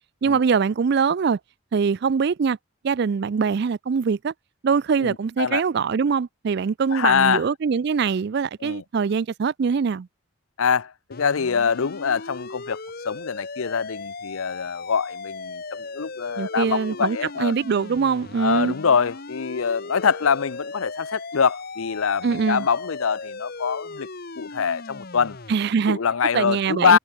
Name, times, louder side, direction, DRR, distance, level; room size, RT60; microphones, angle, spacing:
voice 1, 0.2-1.4 1.7-2.6 2.8-4.3 4.6-10.1 16.4-18.7 22.2-22.7 25.5-26.0 26.3-27.0, right 5 dB, 50° right, 0.4 m, -23 dB
voice 2, 5.0-5.6 6.9-7.4 8.6-8.8 10.6-12.8 13.0-17.5 18.4-24.1 24.4-25.4 25.9-27.0, left 6 dB, 75° left, 0.6 m, -24 dB
sound 1, 11.1-25.5, left 3 dB, 45° left, 1.1 m, -37 dB
head